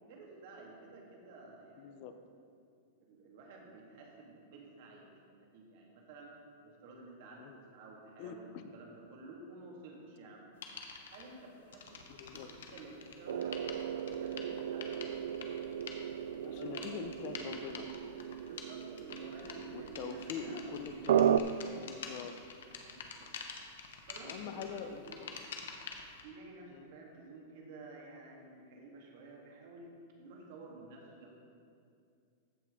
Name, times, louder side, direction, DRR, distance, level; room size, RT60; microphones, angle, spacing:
voice 1, 0.1-2.0 3.0-6.3 6.6-10.5 11.1-15.1 16.3-17.1 18.5-20.6 21.5-22.3 22.8-23.4 24.1-25.2 26.2-31.4, right 2 dB, 45° right, -1 dB, 1.9 m, -53 dB
voice 2, 1.8-2.1 7.4-7.6 8.2-8.7 12.1-12.5 16.3-17.9 19.7-21.5 21.8-22.3 24.2-25.5 26.7-26.9, left 7 dB, 35° left, 9 dB, 0.5 m, -44 dB
sound 1, 10.6-11.2 11.7-26.2, left 5 dB, 80° left, 1.1 m, -47 dB
sound 2, 13.3-21.4, right 9 dB, 85° right, 0.3 m, -35 dB
15.0 x 5.8 x 3.7 m, 2.3 s
supercardioid pair, 175°, 0 cm